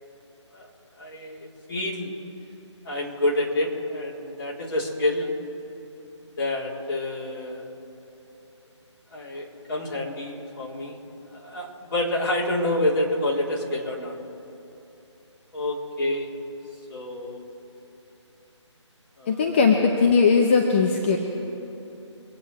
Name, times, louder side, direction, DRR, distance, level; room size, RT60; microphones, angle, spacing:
voice 1, 1.0-2.1 2.8-5.3 6.4-7.7 9.1-11.0 11.3-14.1 15.5-16.3 16.9-17.4 19.2-19.6, left 1 dB, 45° left, -4 dB, 3.8 m, -28 dB
voice 2, 19.3-21.2, left 5 dB, 20° left, 2 dB, 0.7 m, -19 dB
25.0 x 9.0 x 4.8 m, 3.0 s
figure-of-eight pair, 165°, 16 cm